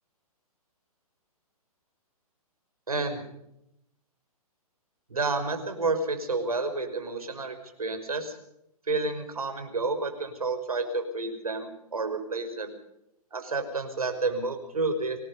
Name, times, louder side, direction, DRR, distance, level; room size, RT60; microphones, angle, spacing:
voice 1, 2.9-3.2 5.1-8.4 8.9-12.7 13.3-15.2, right 3 dB, 70° right, 7 dB, 5.7 m, -30 dB
26.0 x 19.5 x 5.5 m, 0.79 s
figure-of-eight pair, 125°, 19 cm